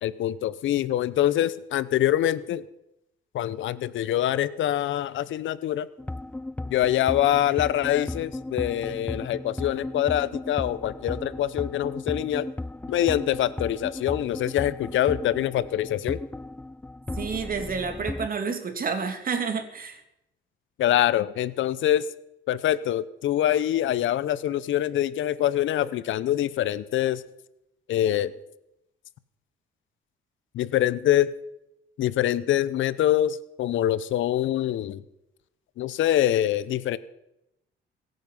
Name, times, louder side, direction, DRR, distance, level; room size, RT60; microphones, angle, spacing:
voice 1, 0.0-2.6 3.3-5.9 6.7-12.5 12.9-16.2 20.8-22.1 22.5-27.2 27.9-28.3 30.5-31.3 32.0-35.0 35.8-37.0, left 12 dB, 75° left, 17 dB, 0.8 m, -24 dB
sound 1, 6.0-18.3, left 2 dB, 10° left, 0.5 m, -35 dB
voice 2, 17.2-20.0, right 5 dB, 45° right, 6 dB, 2.5 m, -29 dB
22.5 x 9.4 x 5.5 m, 0.85 s
cardioid pair, 90°, 20 cm